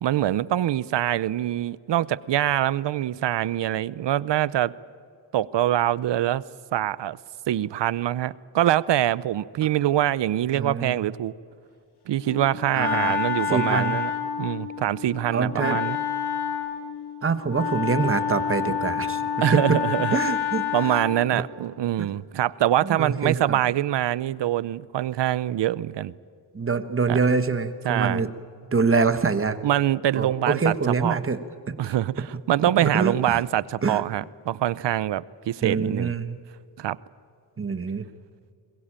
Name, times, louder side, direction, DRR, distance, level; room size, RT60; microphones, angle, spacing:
voice 1, 0.0-4.7 5.3-6.4 6.7-7.2 7.5-11.3 12.1-14.1 14.4-16.0 19.4-20.2 20.7-26.1 27.1-27.2 27.8-28.3 29.6-31.2 31.8-36.1 36.8-37.0, right 12 dB, 80° right, 0.7 m, -24 dB
voice 2, 10.5-11.0 12.7-13.2 13.5-13.9 15.3-15.8 17.2-19.3 20.1-20.6 20.9-21.0 21.3-21.4 22.0-22.1 22.8-23.6 26.5-28.3 28.7-29.6 30.1-31.4 31.7-31.9 32.8-33.4 33.8-34.0 35.6-36.4 37.6-38.1, right 4 dB, 30° right, 1.4 m, -25 dB
Wind instrument woodwind instrument, 12.2-21.3, left 7 dB, 65° left, 2.0 m, -28 dB
22.0 x 21.0 x 8.9 m
wide cardioid pair, 145°, 42 cm